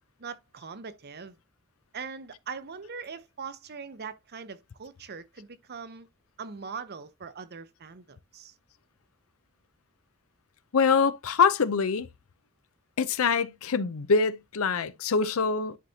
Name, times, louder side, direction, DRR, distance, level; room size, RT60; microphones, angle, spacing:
voice 1, 0.2-1.4 1.9-6.1 6.4-8.5, right 5 dB, 50° right, 0.8 m, -41 dB
voice 2, 10.7-12.1 13.0-15.8, left 5 dB, 70° left, 0.6 m, -24 dB
11.0 x 4.1 x 2.8 m
head